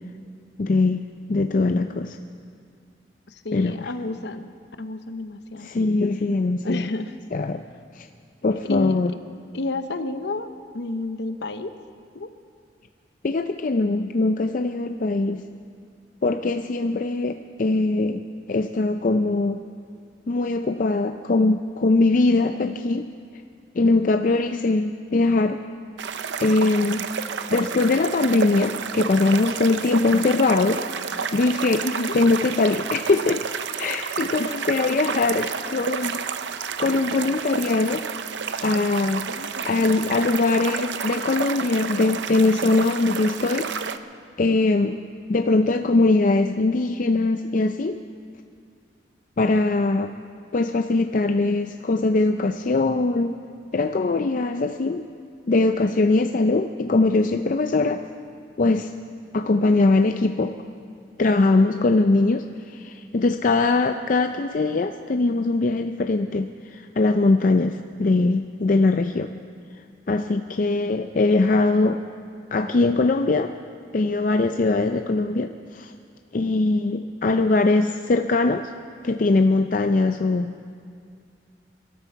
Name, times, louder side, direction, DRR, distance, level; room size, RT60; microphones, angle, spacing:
voice 1, 0.6-2.2 3.5-3.9 5.6-6.9 7.3-7.6 8.0-8.1 8.4-9.1 13.2-15.4 16.2-18.2 18.5-19.6 20.3-23.1 23.7-25.6 26.4-27.0 27.5-30.8 31.3-31.9 32.1-33.4 33.8-36.2 36.6-38.1 38.6-39.2 39.6-43.7 44.4-45.0 45.3-48.0 49.4-50.1 50.5-53.4 53.7-55.1 55.5-58.0 58.6-58.9 59.3-60.5 61.2-69.3 70.1-72.0 72.5-73.5 73.9-75.9 76.3-78.7 79.0-80.5, left 3 dB, 45° left, 7 dB, 0.4 m, -21 dB
voice 2, 3.3-4.5 4.8-5.7 6.6-7.1 8.6-9.0 9.5-10.5 10.7-11.7 12.1-12.3 31.8-32.1 34.4-35.5 39.3-39.9 54.0-54.7 61.8-62.1, left 2 dB, 65° left, 10 dB, 0.8 m, -31 dB
sound 1, 26.0-44.0, right 6 dB, 75° right, 0.6 m, -30 dB
23.0 x 13.0 x 4.6 m, 2.3 s
head